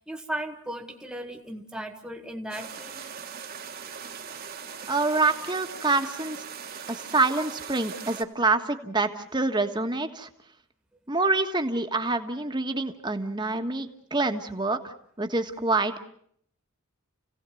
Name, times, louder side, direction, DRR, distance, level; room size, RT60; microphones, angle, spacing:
voice 1, 0.0-3.1, right 1 dB, 5° right, 3 dB, 1.8 m, -36 dB
sound 1, 2.5-8.2, right 7 dB, 45° right, 1.7 m, -40 dB
voice 2, 4.9-6.5 6.9-10.3 11.1-16.0, right 3 dB, 20° right, 6 dB, 1.5 m, -26 dB
29.5 x 17.0 x 7.8 m, 0.68 s
head